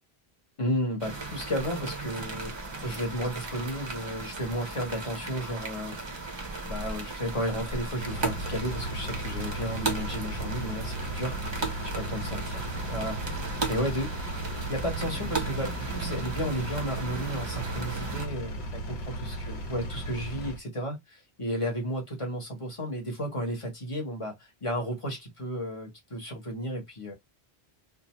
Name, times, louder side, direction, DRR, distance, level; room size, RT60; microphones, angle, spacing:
voice 1, 0.6-2.5 2.8-5.9 6.7-14.2 14.7-27.1, equal, 30° left, 1.0 m, -33 dB
sound 1, 1.0-18.3, right 3 dB, 35° right, 0.5 m, -36 dB
Engine, 7.9-20.6, right 1 dB, 85° left, 1.0 m, -36 dB
2.5 x 2.3 x 2.9 m
omnidirectional pair, 1.1 m